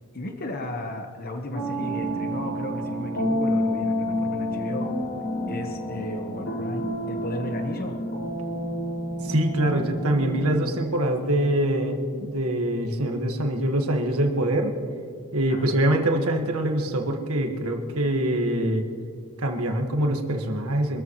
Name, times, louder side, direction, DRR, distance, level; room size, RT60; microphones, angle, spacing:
voice 1, 0.1-5.1 5.5-8.0 15.5-15.7, left 1 dB, 40° left, 4 dB, 1.1 m, -34 dB
sound 1, 1.5-10.6, equal, 80° left, 4.5 m, -29 dB
voice 2, 9.2-14.7 15.3-18.8 19.4-21.0, right 1 dB, 85° right, 3 dB, 1.6 m, -24 dB
25.0 x 14.0 x 3.1 m, 2.3 s
head